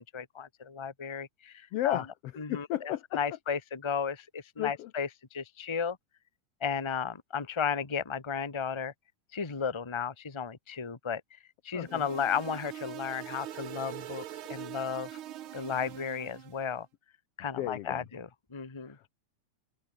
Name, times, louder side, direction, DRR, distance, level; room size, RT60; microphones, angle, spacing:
voice 1, 0.0-2.0 2.4-6.0 6.6-8.9 9.3-11.2 11.6-14.2 14.5-15.2 15.5-16.9 17.4-19.1, left 6 dB, 20° left, 0.7 m, -34 dB
voice 2, 1.7-3.2 4.6-4.9 11.7-12.1 17.6-18.0, left 14 dB, 85° left, 1.3 m, -33 dB
sound 1, 11.8-16.6, right 12 dB, 75° right, 1.2 m, -43 dB
omnidirectional pair, 3.6 m